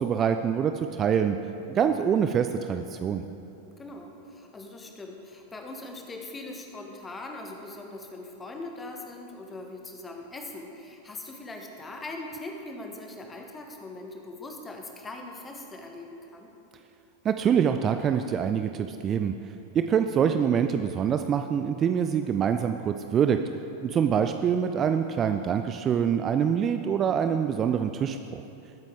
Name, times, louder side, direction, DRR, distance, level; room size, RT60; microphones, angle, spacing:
voice 1, 0.0-1.4 1.7-3.2 17.2-19.3 19.7-23.4 23.8-28.4, right 8 dB, 25° right, 7 dB, 0.4 m, -25 dB
voice 2, 3.8-16.5, left 2 dB, 15° left, 2 dB, 1.6 m, -41 dB
20.5 x 9.0 x 3.7 m, 2.9 s
figure-of-eight pair, 90°, 0 cm